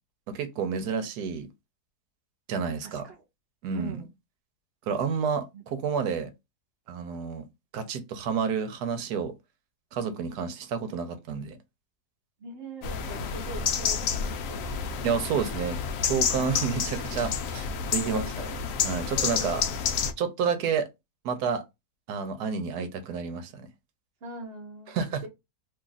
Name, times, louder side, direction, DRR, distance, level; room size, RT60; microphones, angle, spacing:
voice 1, 0.3-1.5 2.5-3.0 3.6-4.0 4.9-6.3 6.9-7.4 7.7-9.3 9.9-11.6 15.0-15.8 16.0-18.5 18.8-19.6 20.2-20.9 21.2-21.6 22.1-23.7 24.9-25.2, right 6 dB, 75° right, 1.2 m, -30 dB
voice 2, 2.8-3.2 3.7-4.1 5.5-5.7 12.4-15.4 16.7-16.9 17.9-18.4 19.4-19.5 24.2-25.3, right 3 dB, 50° right, 0.8 m, -42 dB
sound 1, 12.8-20.1, left 7 dB, 70° left, 0.8 m, -29 dB
2.9 x 2.4 x 3.9 m
omnidirectional pair, 1.8 m